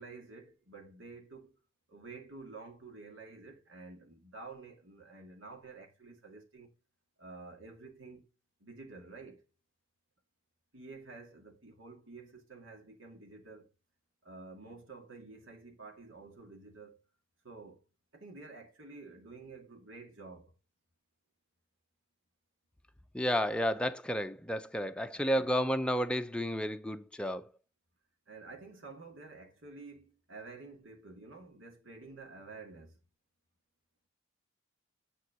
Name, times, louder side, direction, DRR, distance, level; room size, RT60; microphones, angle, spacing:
voice 1, 0.0-1.6 1.9-6.7 7.2-8.3 8.6-9.5 10.7-13.7 14.2-17.0 17.4-17.8 18.1-20.5 25.3-25.5 28.3-33.0, right 3 dB, 75° right, 2.1 m, -50 dB
voice 2, 23.1-27.4, equal, 5° left, 0.6 m, -31 dB
9.7 x 3.7 x 6.3 m
head